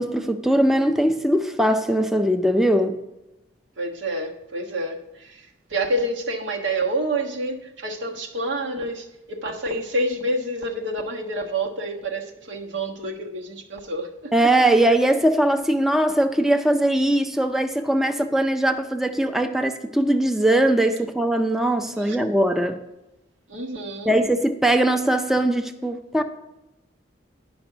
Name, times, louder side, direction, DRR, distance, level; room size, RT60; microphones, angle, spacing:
voice 1, 0.0-3.0 14.3-22.8 24.1-26.2, right 1 dB, ahead, 0.4 m, -20 dB
voice 2, 3.8-14.3 22.0-22.2 23.5-24.1, right 1 dB, 80° right, 1.2 m, -28 dB
10.5 x 5.2 x 6.0 m
head